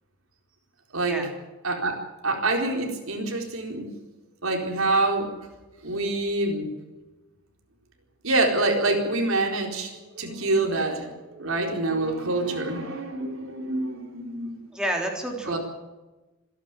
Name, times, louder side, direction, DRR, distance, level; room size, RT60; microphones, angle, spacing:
voice 1, 1.6-2.0 2.2-3.9 4.4-5.3 5.8-6.7 8.2-14.6 15.4-15.6, right 2 dB, 75° right, 2 dB, 4.4 m, -26 dB
voice 2, 14.7-15.6, right 1 dB, 5° right, 0 dB, 3.6 m, -29 dB
26.5 x 11.5 x 9.2 m, 1.1 s
head